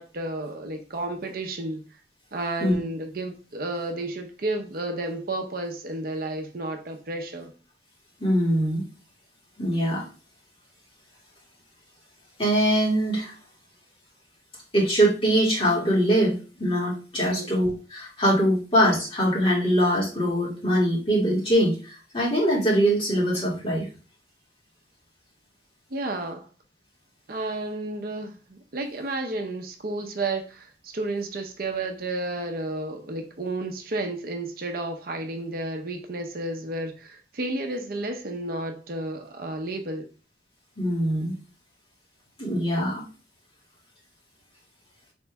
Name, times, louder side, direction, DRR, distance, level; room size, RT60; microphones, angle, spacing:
voice 1, 0.0-1.8 2.3-7.5 17.3-17.5 25.9-26.5 27.3-40.1, right 2 dB, 55° right, 0.6 m, -32 dB
voice 2, 8.2-8.8 9.6-10.1 12.4-13.3 14.7-23.9 40.8-41.3 42.4-43.0, equal, 30° left, 2.2 m, -23 dB
4.4 x 3.1 x 3.4 m
head